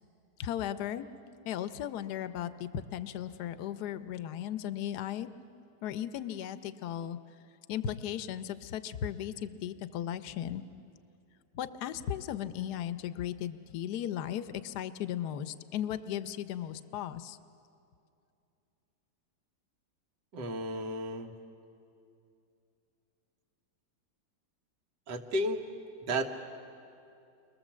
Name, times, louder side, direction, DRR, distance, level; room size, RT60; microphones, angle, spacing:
voice 1, 0.4-1.1 1.4-5.3 5.8-7.2 7.7-10.6 11.5-17.4, left 10 dB, 65° left, 11 dB, 1.3 m, -36 dB
voice 2, 20.3-21.3 25.1-25.6 26.1-26.3, right 1 dB, 70° right, 4 dB, 2.0 m, -32 dB
30.0 x 22.5 x 7.4 m, 2.6 s
omnidirectional pair, 1.9 m